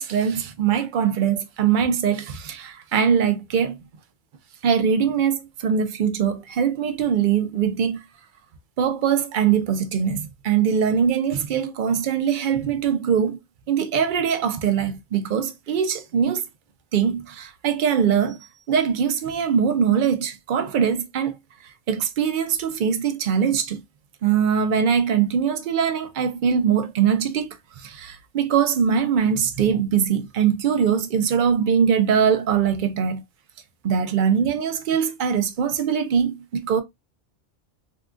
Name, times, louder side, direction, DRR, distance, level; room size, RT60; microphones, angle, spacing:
voice 1, 0.0-3.8 4.6-8.0 8.8-13.4 13.7-16.4 16.9-18.4 18.7-21.3 21.6-23.8 24.2-33.2 33.8-36.8, right 7 dB, 65° right, 0.5 m, -22 dB
3.6 x 2.3 x 2.3 m
omnidirectional pair, 1.3 m